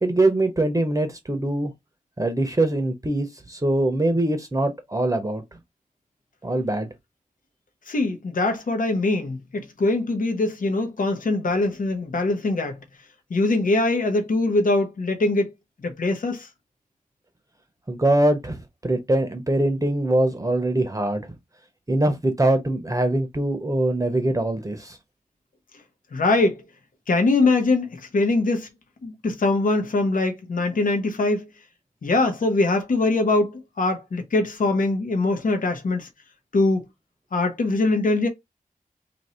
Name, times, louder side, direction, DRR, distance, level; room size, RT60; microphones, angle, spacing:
voice 1, 0.0-1.7 2.2-5.4 6.4-6.9 17.9-18.6 18.8-21.3 21.9-25.0, right 1 dB, 20° right, 0.7 m, -23 dB
voice 2, 7.9-12.8 13.3-15.5 15.8-16.5 26.1-26.6 27.1-28.7 29.0-31.5 32.0-36.1 36.5-36.8 37.3-38.3, left 2 dB, 65° left, 0.9 m, -22 dB
2.8 x 2.6 x 4.3 m
wide cardioid pair, 100°, 15 cm